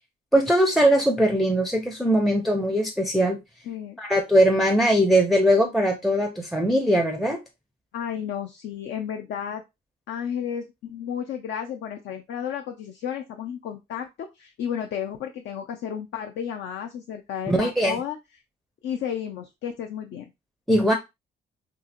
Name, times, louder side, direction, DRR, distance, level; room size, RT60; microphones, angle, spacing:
voice 1, 0.3-3.4 4.0-7.4 17.5-18.0 20.7-20.9, equal, ahead, 0.4 m, -20 dB
voice 2, 3.7-4.0 7.3-7.4 7.9-9.6 10.1-14.1 14.3-18.2 18.8-20.3, left 8 dB, 70° left, 0.5 m, -32 dB
2.8 x 2.7 x 2.5 m
cardioid pair, 90°, 20 cm